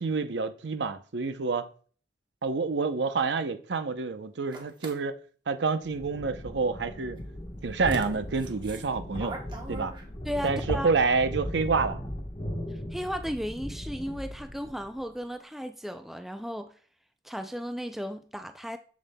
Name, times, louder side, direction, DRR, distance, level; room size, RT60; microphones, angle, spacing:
voice 1, 0.0-1.7 2.4-5.2 5.5-7.2 7.6-9.4 9.7-9.9 10.4-12.0, right 4 dB, 75° right, 0.6 m, -28 dB
sound 1, 4.5-5.0 7.2-7.3 7.8-10.4, right 1 dB, 25° right, 1.0 m, -39 dB
sound 2, 5.8-15.0, equal, 35° left, 1.2 m, -38 dB
voice 2, 10.2-10.9 12.7-16.7 17.2-18.8, equal, ahead, 0.3 m, -35 dB
7.2 x 7.1 x 2.2 m
head